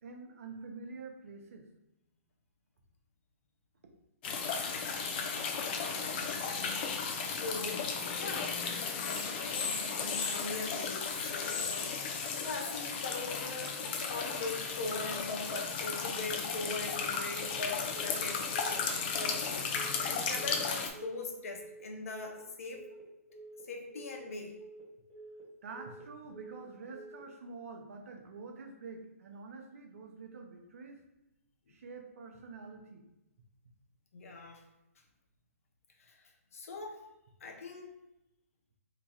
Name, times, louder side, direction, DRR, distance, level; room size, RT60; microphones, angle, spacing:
voice 1, 0.0-1.7 9.8-10.4 25.6-31.0 31.7-33.0, right 4 dB, 65° right, 3 dB, 0.6 m, -47 dB
sound 1, 4.2-20.9, left 5 dB, 40° left, 0.5 m, -35 dB
voice 2, 5.7-6.9 7.1-8.5 9.0-11.9 12.4-18.9 19.2-22.8 23.7-24.6 31.7-31.8 34.1-34.6 36.0-37.0 37.4-37.9, left 3 dB, 70° left, 2 dB, 0.7 m, -41 dB
Telephone, 16.7-17.0 17.3-17.6 17.9-18.2 18.5-18.8 19.1-19.4 19.7-20.0 20.3-20.6 20.9-21.2 21.5-21.8 22.1-22.4 22.7-23.0 23.3-23.6 23.9-24.2 24.5-24.8 25.1-25.4 25.7-26.0 26.3-26.6 26.9-27.2, right 2 dB, 15° left, 1.3 m, -50 dB
3.0 x 2.3 x 4.2 m, 0.92 s
hypercardioid pair, 145°, 8 cm